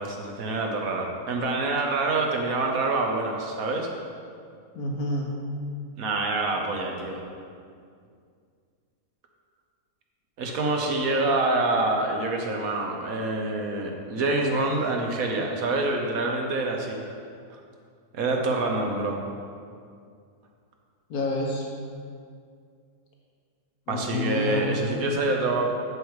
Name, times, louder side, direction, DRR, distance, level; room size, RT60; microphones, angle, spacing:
voice 1, 0.0-3.9 6.0-7.2 10.4-17.0 17.5-17.6 18.1-19.2 23.9-25.7, right 2 dB, 65° right, 1 dB, 1.5 m, -26 dB
voice 2, 4.7-5.3 21.1-21.7 23.9-25.2, left 1 dB, 75° left, -1 dB, 1.5 m, -29 dB
8.1 x 6.7 x 4.8 m, 2.2 s
omnidirectional pair, 1.6 m